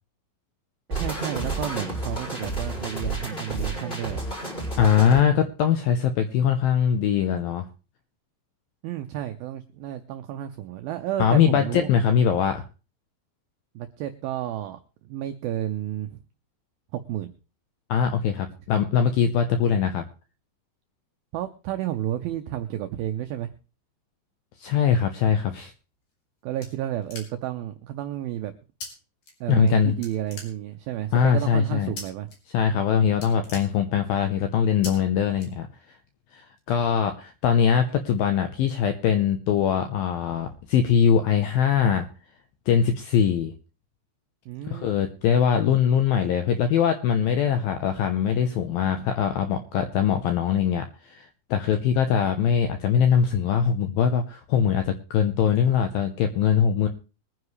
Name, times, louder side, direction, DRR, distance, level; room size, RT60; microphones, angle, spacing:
sound 1, 0.9-5.2, right 2 dB, 15° left, 4.4 m, -31 dB
voice 1, 0.9-4.2 8.8-11.9 13.8-14.8 15.1-16.2 16.9-17.3 21.3-23.5 26.4-28.5 29.4-32.3 44.5-45.0, right 12 dB, 85° right, 7 dB, 2.1 m, -31 dB
voice 2, 4.8-7.7 11.2-12.6 17.9-20.0 24.6-25.7 29.5-29.9 31.1-31.9 32.5-35.7 36.3-42.1 42.7-43.5 44.7-56.9, left 8 dB, 80° left, 8 dB, 2.1 m, -22 dB
sound 2, 25.9-27.6 28.8-28.9 29.2-29.7 30.0-31.0 32.0-32.4 32.7-32.8 33.1-34.3 34.8-34.9 35.4-36.0, left 3 dB, 50° left, 4.6 m, -41 dB
22.5 x 9.6 x 3.2 m, 0.34 s
omnidirectional pair, 5.2 m